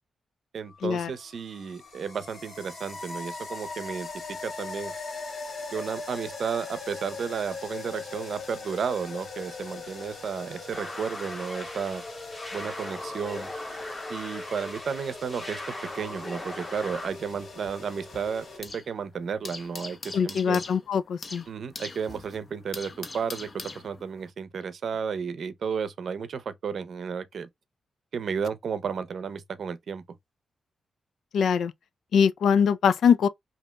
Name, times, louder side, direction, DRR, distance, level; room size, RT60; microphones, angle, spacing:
voice 1, 0.5-4.1 4.4-4.9 5.7-12.0 12.5-13.5 14.1-15.6 15.9-20.6 21.5-27.5 28.1-30.0, right 6 dB, 60° right, 0.6 m, -33 dB
sound 1, 0.7-18.6, left 3 dB, 60° left, 2.3 m, -40 dB
sound 2, 10.7-17.1, left 1 dB, 15° left, 1.4 m, -39 dB
sound 3, 16.9-19.0 19.2-24.3, left 3 dB, 30° left, 0.8 m, -42 dB
voice 2, 20.1-21.4 31.3-31.7 32.1-33.3, left 7 dB, 80° left, 0.4 m, -22 dB
5.2 x 2.8 x 2.3 m
wide cardioid pair, 155°, 0 cm